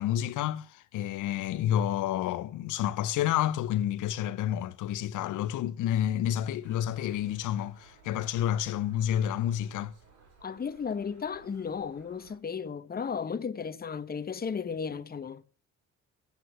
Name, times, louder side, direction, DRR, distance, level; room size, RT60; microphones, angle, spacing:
voice 1, 0.0-9.9, left 11 dB, 80° left, 0.7 m, -29 dB
sound 1, 6.6-12.4, right 4 dB, 75° right, 4.4 m, -58 dB
voice 2, 10.4-15.4, left 6 dB, 30° left, 0.9 m, -34 dB
9.8 x 7.9 x 9.2 m
cardioid pair, 90°, 30 cm